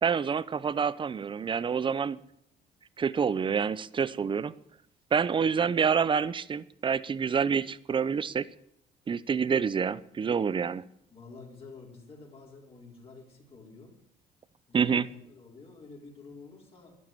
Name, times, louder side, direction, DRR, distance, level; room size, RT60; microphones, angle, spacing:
voice 1, 0.0-2.2 3.0-4.5 5.1-8.4 9.1-10.8 14.7-15.0, right 6 dB, 30° right, 18 dB, 0.7 m, -27 dB
voice 2, 11.1-14.0 14.7-17.0, left 4 dB, 35° left, -2 dB, 4.5 m, -49 dB
12.5 x 11.0 x 9.1 m, 0.72 s
cardioid pair, 110°, 17 cm